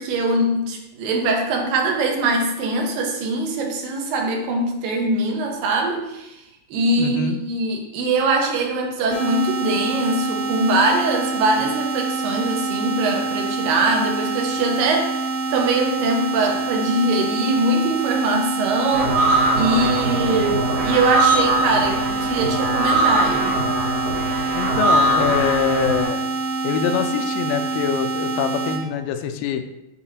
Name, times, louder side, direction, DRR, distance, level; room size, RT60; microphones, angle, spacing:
voice 1, 0.0-6.4 6.7-23.6, right 2 dB, 90° right, 1 dB, 2.6 m, -22 dB
voice 2, 7.0-7.4 24.5-26.3 26.6-29.6, left 8 dB, 85° left, 7 dB, 2.2 m, -24 dB
sound 1, 9.1-28.8, right 4 dB, 40° left, 0.9 m, -26 dB
sound 2, 18.9-26.0, right 1 dB, 65° right, 2.5 m, -21 dB
7.2 x 4.8 x 2.8 m, 0.90 s
omnidirectional pair, 3.9 m